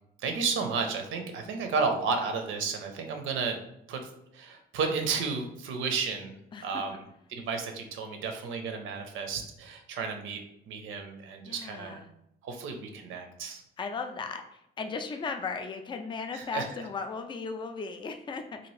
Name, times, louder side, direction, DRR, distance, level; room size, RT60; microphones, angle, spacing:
voice 1, 0.2-3.6 3.9-4.0 4.3-6.3 6.6-7.0 7.3-10.4 10.7-12.0 12.4-13.6 16.3-16.7, right 5 dB, 80° right, 5 dB, 0.6 m, -32 dB
voice 2, 6.5-6.8 11.4-12.1 13.8-18.7, left 5 dB, 25° left, 6 dB, 0.3 m, -36 dB
2.7 x 2.5 x 3.1 m, 0.78 s
cardioid pair, 90°, 20 cm